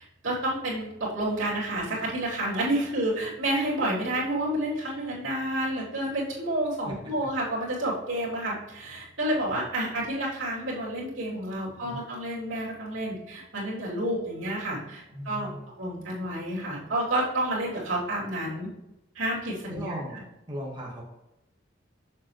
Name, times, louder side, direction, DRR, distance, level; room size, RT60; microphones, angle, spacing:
voice 1, 0.2-15.5 15.8-18.7 19.1-19.9, right 1 dB, 85° right, -7 dB, 3.0 m, -29 dB
voice 2, 15.1-15.7 19.7-21.0, equal, 25° right, -4 dB, 1.5 m, -37 dB
7.3 x 7.1 x 3.1 m, 0.90 s
head